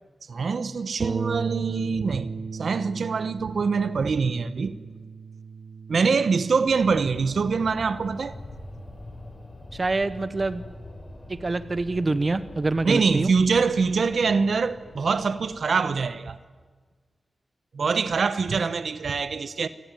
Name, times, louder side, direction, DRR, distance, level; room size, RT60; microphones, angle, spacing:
voice 1, 0.3-4.7 5.9-8.3 12.8-16.4 17.7-19.7, right 5 dB, 75° right, 1.1 m, -24 dB
Bass guitar, 1.0-7.2, right 4 dB, 55° right, 2.2 m, -35 dB
sound 1, 6.7-16.1, left 2 dB, 35° left, 6.0 m, -43 dB
voice 2, 9.7-10.6 11.3-13.3, right 3 dB, 35° right, 1.1 m, -26 dB
28.5 x 20.0 x 9.1 m
wide cardioid pair, 105°, 0 cm